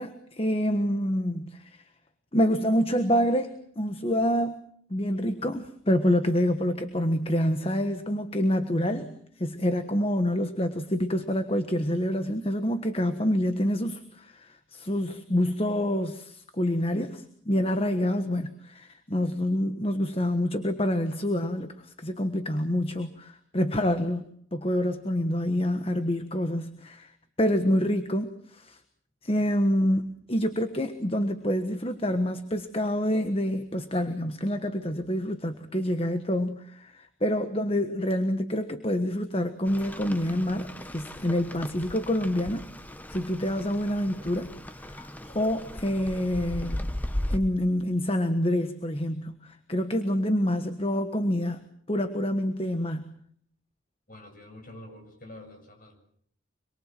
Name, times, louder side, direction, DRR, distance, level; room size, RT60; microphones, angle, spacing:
voice 1, 0.0-1.8 2.3-4.6 4.9-24.2 24.5-27.1 27.4-28.8 29.2-42.7 43.1-44.5 44.8-46.9 47.3-53.2, equal, 30° left, 8 dB, 1.4 m, -27 dB
Rain, 39.7-47.4, left 1 dB, 10° left, 1.1 m, -37 dB
voice 2, 54.1-56.0, left 1 dB, 45° left, 4 dB, 7.4 m, -47 dB
26.0 x 23.0 x 7.6 m, 0.63 s
head